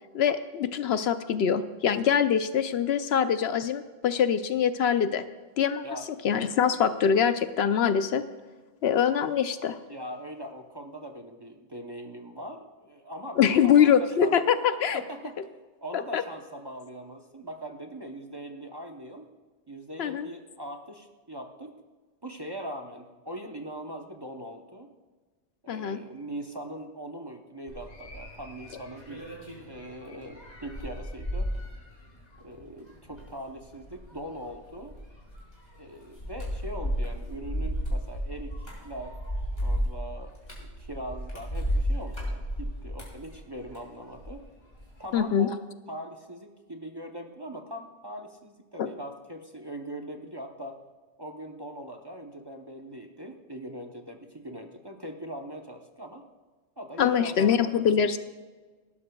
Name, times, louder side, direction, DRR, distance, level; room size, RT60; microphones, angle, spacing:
voice 1, 0.1-5.2 5.6-5.8 6.2-8.2 8.8-9.8 13.4-15.0 15.9-16.2 20.0-20.3 25.7-26.0 45.1-45.5 48.8-48.9 57.0-58.2, left 8 dB, 70° left, 11 dB, 0.8 m, -24 dB
voice 2, 9.9-14.3 14.9-15.4 15.8-19.3 19.7-21.7 22.2-24.9 25.6-29.3 29.7-31.5 32.4-34.9 35.7-39.2 39.6-44.4 45.0-45.6 45.9-50.8 51.2-56.3 56.8-57.7, right 1 dB, 25° right, 3 dB, 0.7 m, -41 dB
sound 1, 27.7-44.4 44.7-45.2, equal, 40° left, 3.8 m, -34 dB
18.0 x 12.0 x 2.3 m, 1.4 s
omnidirectional pair, 1.2 m